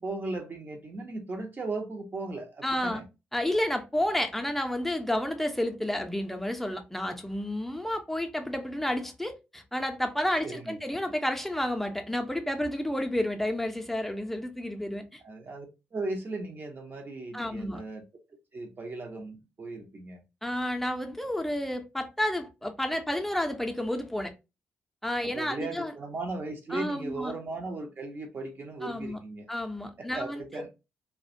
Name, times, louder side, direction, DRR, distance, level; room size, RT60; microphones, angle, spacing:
voice 1, 0.0-3.1 10.4-10.8 15.2-18.0 18.5-20.2 25.2-29.5 30.0-30.7, right 2 dB, 35° right, 0.6 m, -37 dB
voice 2, 2.6-3.0 3.3-15.2 17.3-17.8 20.4-24.3 25.0-25.9 26.7-27.3 28.8-29.2 29.5-30.4, left 1 dB, 5° left, 0.5 m, -31 dB
2.3 x 2.1 x 2.5 m
figure-of-eight pair, 40°, 6 cm